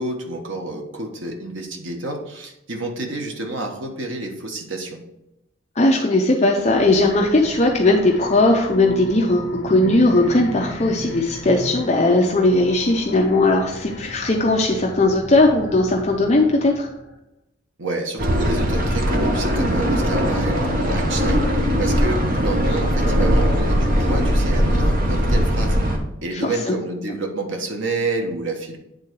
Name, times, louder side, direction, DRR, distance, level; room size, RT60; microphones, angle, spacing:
voice 1, 0.0-5.0 17.8-21.4 21.8-25.8 26.2-28.8, right 2 dB, 75° right, 3 dB, 1.2 m, -29 dB
voice 2, 5.8-16.9 26.4-26.7, left 2 dB, 35° left, 0 dB, 0.6 m, -18 dB
sound 1, 6.5-17.2, left 1 dB, 50° left, 1.4 m, -35 dB
sound 2, 18.2-26.0, equal, 45° right, 0.9 m, -20 dB
8.9 x 3.8 x 4.6 m, 0.87 s
head